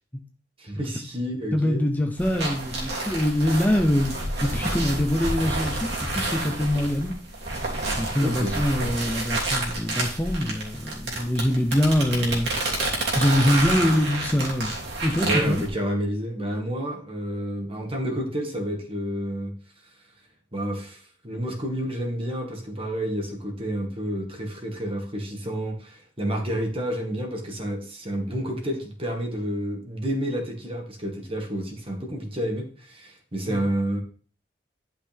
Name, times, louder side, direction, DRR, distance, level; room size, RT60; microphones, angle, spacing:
voice 1, 0.6-1.8 8.2-8.5 12.1-12.4 15.2-19.5 20.5-34.0, equal, 30° right, 2 dB, 1.9 m, -30 dB
voice 2, 1.5-7.1 7.5-7.7 8.0-12.5 12.8-14.7 15.0-15.6 33.5-33.6, left 1 dB, 10° left, 4 dB, 0.7 m, -24 dB
sound 1, 2.2-15.7, right 2 dB, 65° right, 2.9 m, -29 dB
11.5 x 5.5 x 3.5 m, 0.41 s
head